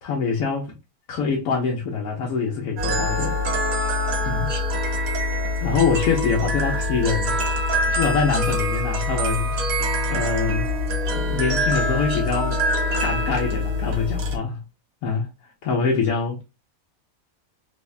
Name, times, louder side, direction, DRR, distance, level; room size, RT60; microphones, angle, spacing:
voice 1, 0.0-0.7 1.1-3.4 4.2-4.5 5.6-7.4 7.9-10.7 11.1-12.6 13.0-14.6 15.0-15.3 15.6-16.4, left 5 dB, 85° left, 1.1 m, -25 dB
sound 1, 2.8-14.4, left 1 dB, 75° right, 1.2 m, -24 dB
3.4 x 2.0 x 2.3 m
omnidirectional pair, 1.5 m